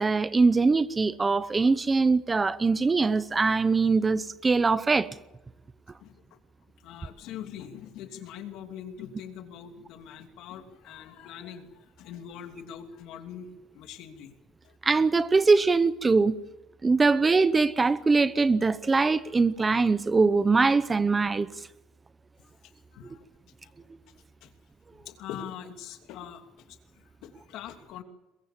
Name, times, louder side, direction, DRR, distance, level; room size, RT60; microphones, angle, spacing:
voice 1, 0.0-5.1 14.8-16.3 16.8-21.5, right 4 dB, 15° right, 0.7 m, -22 dB
voice 2, 6.0-6.4 6.8-11.7 12.0-14.3 14.6-14.8 22.9-23.2 23.6-23.7 24.4-24.5 24.9-26.4 26.7-28.0, left 9 dB, 70° left, 2.8 m, -43 dB
22.5 x 22.0 x 7.5 m
cardioid pair, 155°, 0 cm